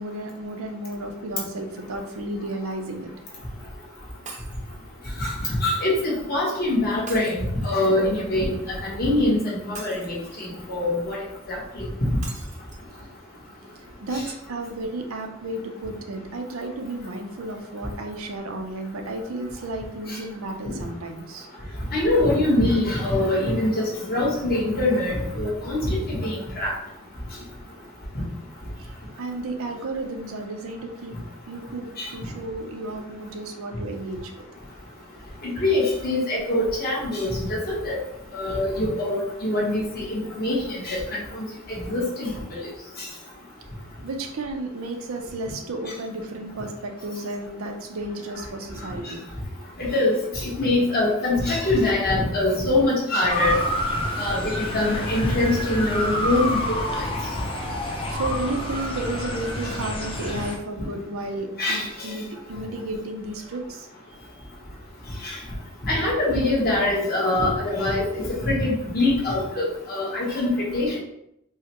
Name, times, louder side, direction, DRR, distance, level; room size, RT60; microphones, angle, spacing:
voice 1, 0.0-3.1 14.0-21.5 28.8-28.9 29.2-31.2 31.5-34.3 44.0-49.3 57.8-63.9, right 2 dB, 85° right, 4 dB, 0.6 m, -33 dB
Shatter, 4.3-4.7 7.1-7.9 9.7-10.5 12.2-12.8 13.4-13.5 13.8-13.9, right 4 dB, 35° right, 0.6 m, -42 dB
voice 2, 5.2-11.2 11.5-12.1 14.1-14.2 21.9-26.7 32.0-32.1 35.4-38.0 38.3-42.6 49.0-49.1 49.8-53.5 54.2-57.1 61.6-62.1 65.2-65.4 65.8-71.0, left 2 dB, 45° left, -5 dB, 1.2 m, -24 dB
Motor vehicle (road) / Siren, 53.3-60.6, left 1 dB, 25° left, 0.6 m, -28 dB
4.6 x 2.2 x 3.0 m, 0.78 s
head